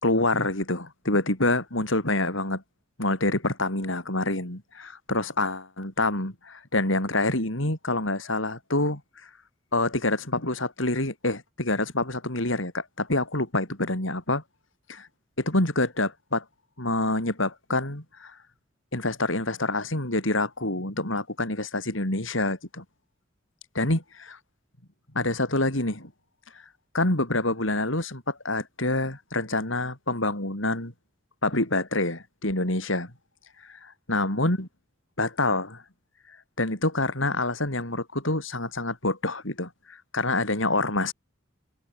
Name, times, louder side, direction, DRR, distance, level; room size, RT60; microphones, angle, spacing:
voice 1, 0.0-2.6 3.0-9.0 9.7-14.4 14.9-15.1 15.4-16.4 16.8-18.3 18.9-22.8 23.7-24.4 25.1-26.1 26.9-30.9 31.4-33.1 33.7-34.7 35.2-35.8 36.6-41.1, left 2 dB, 80° left, 6.3 m, -27 dB
head